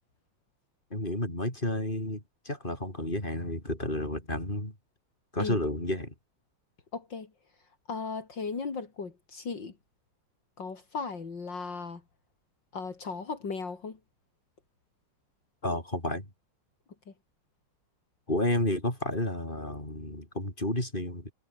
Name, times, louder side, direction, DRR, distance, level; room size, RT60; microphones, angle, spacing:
voice 1, 0.9-4.7 5.3-6.1 15.6-16.3 18.3-21.3, left 1 dB, 25° left, 7.7 m, -31 dB
voice 2, 6.9-7.3 7.9-9.7 10.6-12.0 12.7-14.0 17.1-17.2, left 4 dB, 75° left, 3.7 m, -36 dB
omnidirectional pair, 2.0 m